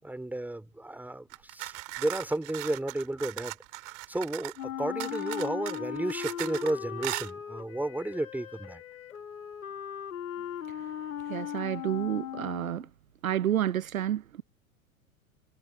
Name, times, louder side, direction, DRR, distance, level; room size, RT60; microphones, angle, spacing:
voice 1, 0.0-3.6 4.1-8.8, right 1 dB, 5° right, 4.4 m, -33 dB
sound 1, 1.3-4.6 5.0-6.7 7.0-7.3, right 36 dB, 45° right, 4.2 m, -38 dB
Wind instrument woodwind instrument, 4.6-12.9, left 9 dB, 65° left, 3.2 m, -38 dB
voice 2, 11.3-12.9 13.2-14.4, right 11 dB, 70° right, 0.9 m, -30 dB
figure-of-eight pair, 95°, 43 cm